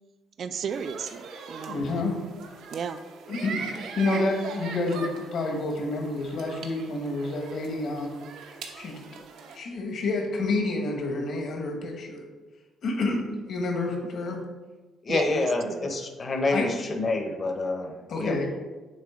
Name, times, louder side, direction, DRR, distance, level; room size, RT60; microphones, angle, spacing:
voice 1, 0.4-1.8 2.7-3.0 15.1-15.9, right 6 dB, 50° right, 10 dB, 0.3 m, -34 dB
sound 1, 0.7-9.6, right 4 dB, 85° right, 0.8 m, -41 dB
voice 2, 1.7-2.2 3.3-3.6 4.0-8.1 8.8-9.0 9.5-12.2 12.8-13.2 13.5-14.4 16.5-16.7 18.1-18.5, left 2 dB, 60° left, 2 dB, 1.3 m, -28 dB
voice 3, 15.0-18.5, left 2 dB, 35° left, 4 dB, 0.8 m, -28 dB
7.4 x 3.2 x 4.9 m, 1.2 s
cardioid pair, 130°, 0 cm